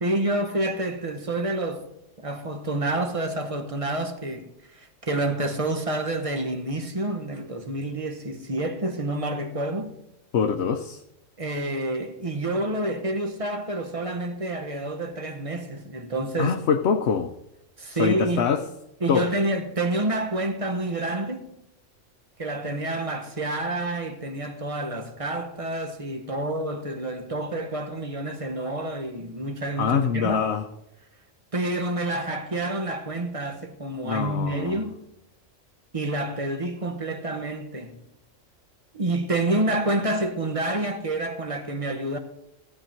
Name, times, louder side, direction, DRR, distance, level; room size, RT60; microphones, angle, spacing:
voice 1, 0.0-1.9 2.2-9.9 11.4-16.6 17.8-18.5 19.0-21.5 22.4-30.5 31.5-35.0 35.9-38.0 38.9-42.2, right 2 dB, 25° right, 1.2 m, -28 dB
voice 2, 10.3-11.0 16.4-17.3 17.9-18.6 19.1-19.2 29.8-30.6 34.0-34.8, left 6 dB, 60° left, 0.9 m, -24 dB
15.5 x 8.8 x 4.5 m
omnidirectional pair, 1.3 m